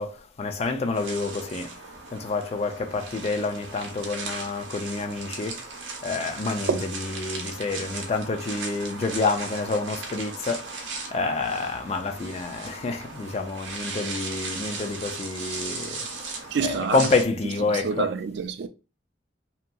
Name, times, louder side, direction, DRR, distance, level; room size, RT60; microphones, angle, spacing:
voice 1, 0.0-1.8 2.1-5.7 6.0-18.1, left 3 dB, 35° left, 0.3 m, -28 dB
sound 1, 0.9-17.2, right 4 dB, 85° right, 0.7 m, -37 dB
voice 2, 16.5-17.0 17.7-18.7, right 5 dB, 65° right, 0.3 m, -27 dB
2.8 x 2.6 x 2.2 m
head